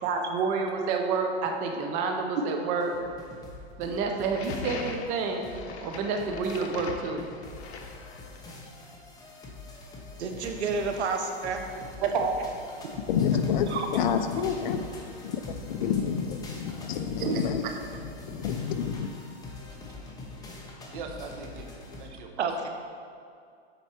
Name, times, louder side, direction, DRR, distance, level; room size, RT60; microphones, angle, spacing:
voice 1, 0.0-2.9 3.8-5.4 5.8-7.3, right 4 dB, 25° right, 3 dB, 0.5 m, -29 dB
sound 1, 2.8-22.1, left 3 dB, 10° left, 0.8 m, -44 dB
sound 2, 4.2-8.5, left 5 dB, 85° left, 0.8 m, -40 dB
voice 2, 10.2-11.6 13.7-13.9 22.4-22.7, right 4 dB, 85° right, 4 dB, 0.9 m, -29 dB
voice 3, 12.0-12.4 17.2-17.4 19.9-20.2 20.9-22.5, right 5 dB, 50° right, 4 dB, 1.0 m, -32 dB
voice 4, 13.1-14.8 15.2-15.4 15.7-17.6 18.3-19.1, left 7 dB, 45° left, 8 dB, 0.5 m, -28 dB
7.5 x 4.6 x 4.4 m, 2.3 s
hypercardioid pair, 145°, 32 cm